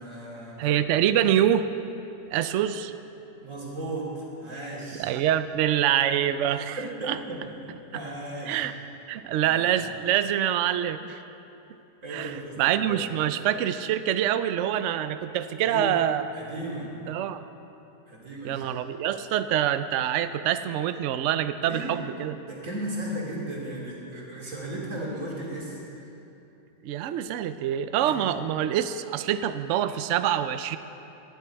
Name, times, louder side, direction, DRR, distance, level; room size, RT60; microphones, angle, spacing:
voice 1, 0.0-0.6 3.4-5.1 6.7-8.6 9.4-9.9 12.0-13.1 15.6-16.0 16.3-16.9 18.1-18.8 21.6-22.0 22.4-25.8 28.0-28.3, right 1 dB, 45° right, -4 dB, 3.2 m, -36 dB
voice 2, 0.6-1.7 2.3-2.9 5.0-6.8 7.1-7.2 8.5-8.7 9.1-11.2 12.1-12.3 12.6-16.3 17.1-17.4 18.4-22.4 26.8-30.8, right 10 dB, 85° right, 11 dB, 0.6 m, -25 dB
18.5 x 11.5 x 4.6 m, 2.9 s
omnidirectional pair, 1.8 m